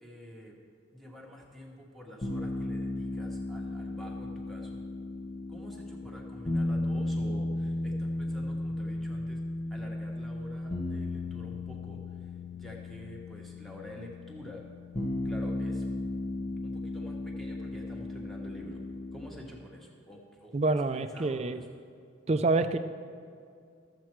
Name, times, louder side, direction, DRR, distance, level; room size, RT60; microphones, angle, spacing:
voice 1, 0.0-0.6 0.9-4.8 5.5-9.4 9.7-14.6 15.2-15.9 16.6-18.8 19.1-21.7, equal, ahead, -1 dB, 1.2 m, -47 dB
sound 1, 2.2-19.2, left 2 dB, 30° left, 0.8 m, -35 dB
voice 2, 20.5-21.6 22.3-22.8, right 3 dB, 35° right, 9 dB, 0.4 m, -27 dB
13.5 x 7.5 x 4.5 m, 2.3 s
head